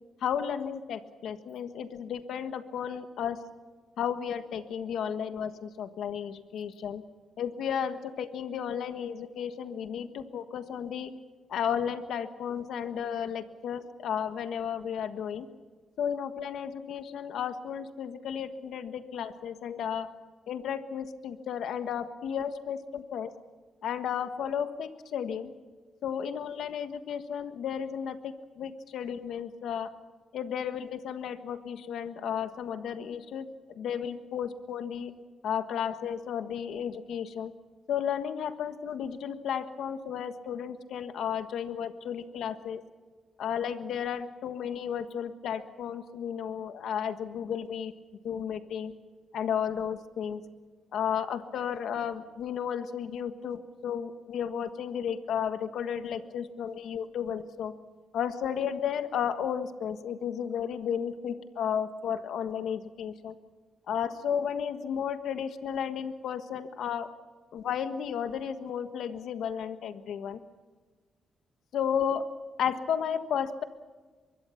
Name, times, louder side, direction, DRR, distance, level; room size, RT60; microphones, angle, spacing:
voice 1, 0.2-3.4 4.0-7.0 7.4-11.1 11.5-15.5 16.0-20.1 20.5-23.3 23.8-25.5 26.0-29.9 30.3-33.5 33.7-35.1 35.4-37.5 37.9-42.8 43.4-47.9 48.2-48.9 49.3-50.4 50.9-57.7 58.1-63.3 63.9-67.1 67.5-70.4 71.7-72.3 72.6-73.6, left 8 dB, 80° left, 9 dB, 1.5 m, -33 dB
23.5 x 23.0 x 5.9 m, 1.4 s
cardioid pair, 95°, 0 cm